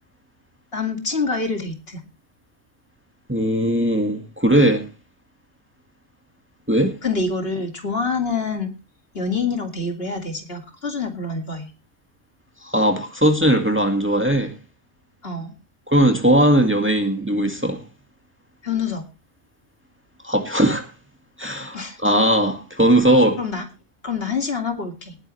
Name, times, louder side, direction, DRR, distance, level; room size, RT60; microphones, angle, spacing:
voice 1, 0.7-2.0 7.0-8.7 9.1-11.7 15.2-15.5 18.6-19.1 21.7-22.0 23.4-23.6 24.0-25.2, left 4 dB, 60° left, 2.7 m, -26 dB
voice 2, 3.3-4.9 6.7-7.0 12.6-14.5 15.9-17.8 20.2-20.9 21.4-23.4, right 1 dB, 10° right, 2.0 m, -19 dB
19.0 x 10.0 x 3.3 m
omnidirectional pair, 1.1 m